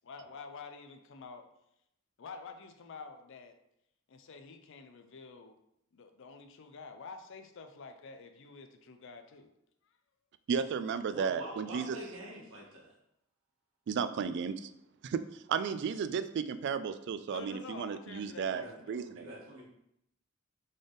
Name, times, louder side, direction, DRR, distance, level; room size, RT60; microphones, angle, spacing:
voice 1, 0.0-1.5 2.2-3.5 4.1-5.6 5.9-9.5 17.3-19.1, left 4 dB, 65° left, 0.5 m, -48 dB
voice 2, 10.5-12.0 13.9-14.7 15.0-19.3, right 6 dB, 55° right, 0.3 m, -34 dB
voice 3, 11.1-12.9 18.5-18.7 19.1-19.6, right 1 dB, 85° right, 1.4 m, -45 dB
3.9 x 3.3 x 3.9 m
head